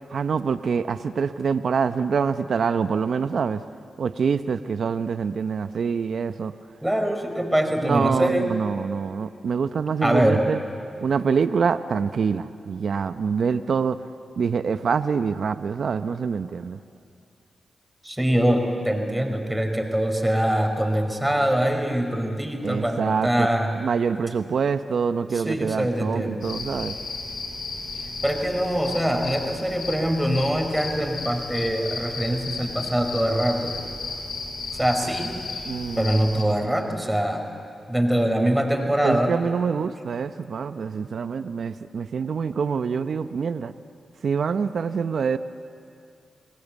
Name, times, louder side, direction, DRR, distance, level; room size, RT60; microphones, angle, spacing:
voice 1, 0.1-3.6 4.0-6.5 7.8-10.6 11.0-14.0 14.4-16.8 22.6-23.5 23.8-26.9 35.7-36.2 39.0-43.7 44.2-45.4, right 6 dB, 70° right, 12 dB, 0.7 m, -25 dB
voice 2, 6.8-8.5 10.0-10.4 18.0-23.7 25.3-26.4 28.2-33.8 34.8-35.4 36.0-37.4 37.9-39.4, right 1 dB, 10° right, 4 dB, 4.5 m, -23 dB
sound 1, 26.4-36.4, left 3 dB, 70° left, 5.5 m, -34 dB
30.0 x 19.5 x 8.3 m, 2.5 s
supercardioid pair, 45°, 0 cm